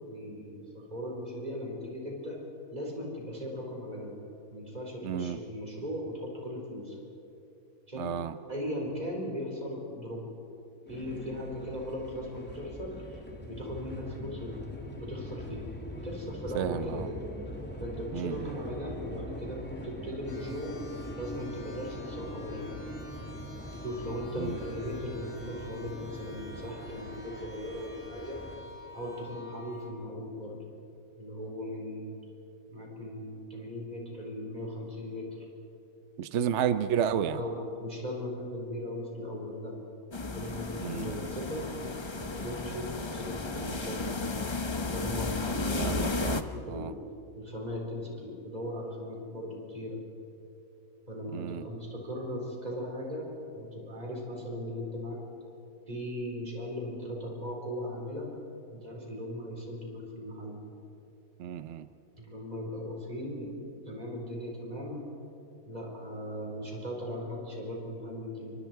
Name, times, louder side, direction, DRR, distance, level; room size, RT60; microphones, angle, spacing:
voice 1, 0.1-2.4 2.7-4.2 4.5-7.0 7.9-8.1 8.5-10.2 10.9-14.6 14.9-15.6 15.9-17.2 17.8-20.8 21.2-22.7 23.8-28.4 28.9-30.6 31.2-32.1 32.7-35.5 37.1-39.8 40.2-41.7 42.2-44.1 44.9-47.0 47.3-50.0 51.1-53.3 53.5-55.2 55.9-58.3 58.7-60.6 62.2-63.6 63.8-65.1 65.6-68.6, equal, 30° right, -1 dB, 4.7 m, -38 dB
voice 2, 5.0-5.4 7.9-8.4 16.5-17.1 18.1-18.6 24.4-24.6 36.2-37.4 40.8-41.1 45.8-46.9 51.3-51.7 61.4-61.9, right 9 dB, 60° right, 12 dB, 0.9 m, -32 dB
sound 1, 10.9-28.6, equal, 5° left, 2.4 m, -42 dB
sound 2, 20.3-29.9, left 2 dB, 55° left, 8.3 m, -50 dB
Warehouse Powder Coat Facility, 40.1-46.4, left 3 dB, 25° left, 0.8 m, -33 dB
29.5 x 24.5 x 4.7 m, 2.7 s
omnidirectional pair, 1.5 m